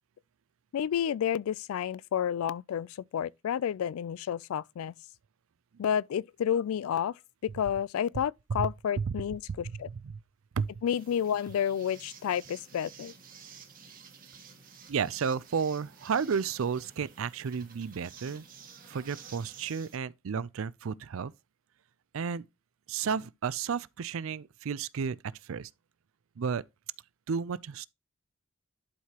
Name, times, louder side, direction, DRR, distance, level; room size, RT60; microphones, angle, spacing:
voice 1, 0.7-4.9 5.8-9.9 10.8-13.1, left 9 dB, 80° left, 0.3 m, -30 dB
voice 2, 9.7-10.2 10.5-10.7 14.9-18.4 18.9-21.3 22.1-22.5 22.9-25.7 26.4-26.6 27.3-27.9, right 6 dB, 75° right, 0.4 m, -32 dB
sound 1, 10.9-20.0, right 6 dB, 40° right, 1.4 m, -52 dB
11.5 x 4.7 x 2.9 m
head